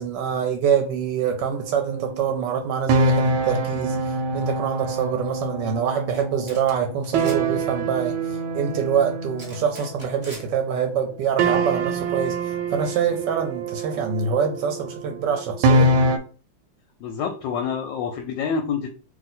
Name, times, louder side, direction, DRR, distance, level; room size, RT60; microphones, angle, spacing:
voice 1, 0.0-15.9, right 7 dB, 70° right, 1.1 m, -25 dB
sound 1, 1.5-10.8 11.4-16.2, right 2 dB, 90° right, 1.4 m, -25 dB
sound 2, 6.1-6.2 6.5-6.7 7.0-7.4 9.4-10.4, right 1 dB, 30° right, 0.9 m, -41 dB
voice 2, 17.0-18.9, left 6 dB, 75° left, 1.2 m, -27 dB
2.9 x 2.7 x 4.1 m
omnidirectional pair, 2.2 m